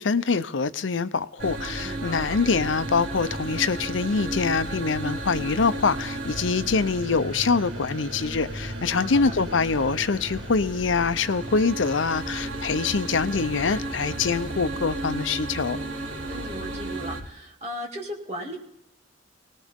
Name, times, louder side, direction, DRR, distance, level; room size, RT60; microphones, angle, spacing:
voice 1, 0.0-15.8, left 4 dB, 85° left, 13 dB, 0.7 m, -24 dB
sound 1, 1.4-17.2, right 1 dB, 80° right, 3.1 m, -34 dB
voice 2, 1.8-2.4 8.9-9.3 16.3-18.6, equal, 35° right, 0 dB, 2.7 m, -36 dB
20.0 x 18.5 x 3.6 m, 0.77 s
head